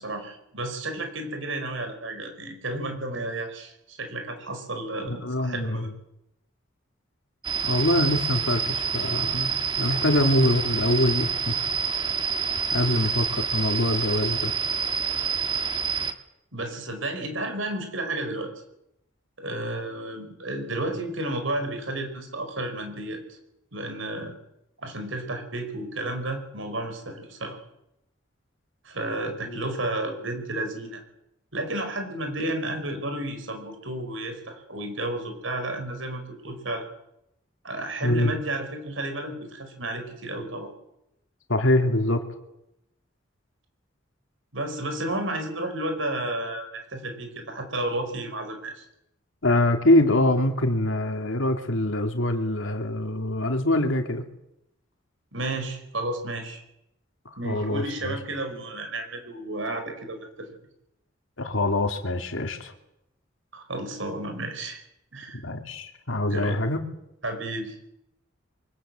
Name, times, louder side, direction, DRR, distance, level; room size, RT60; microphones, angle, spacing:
voice 1, 0.0-5.9 10.1-10.2 16.5-18.5 19.4-23.4 23.7-24.3 24.8-27.6 28.8-31.0 31.5-36.8 37.6-40.7 44.5-48.9 55.3-56.6 57.4-60.6 63.5-64.8 65.1-65.4 66.3-66.5 67.2-67.9, right 1 dB, 75° right, 7 dB, 5.1 m, -32 dB
voice 2, 5.1-5.9 7.6-11.7 12.7-14.5 38.0-38.4 41.5-42.2 49.4-54.2 57.3-58.2 61.4-62.7 65.3-66.8, left 1 dB, 85° left, 5 dB, 2.5 m, -24 dB
sound 1, 7.4-16.1, right 6 dB, 25° right, 1.5 m, -27 dB
23.5 x 21.0 x 7.6 m, 0.84 s
head